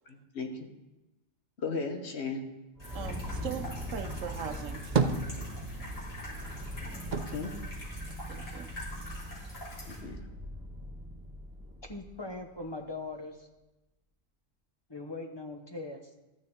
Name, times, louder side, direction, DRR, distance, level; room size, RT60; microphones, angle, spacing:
voice 1, 0.1-0.6 1.6-2.4 7.3-7.5 9.9-10.3, left 4 dB, 60° left, 4 dB, 1.3 m, -36 dB
sound 1, 2.8-10.0, left 1 dB, 80° left, 3.5 m, -46 dB
sound 2, 2.8-12.4, equal, 30° right, 2.1 m, -41 dB
voice 2, 2.9-5.0 8.3-8.7, right 8 dB, 80° right, 8 dB, 1.1 m, -40 dB
sound 3, 4.6-6.0 6.3-8.7 9.0-9.9, right 5 dB, 50° right, 0.6 m, -33 dB
voice 3, 11.8-13.5 14.9-16.1, left 2 dB, 25° left, 3 dB, 0.8 m, -40 dB
13.5 x 9.3 x 3.6 m, 1.0 s
omnidirectional pair, 1.3 m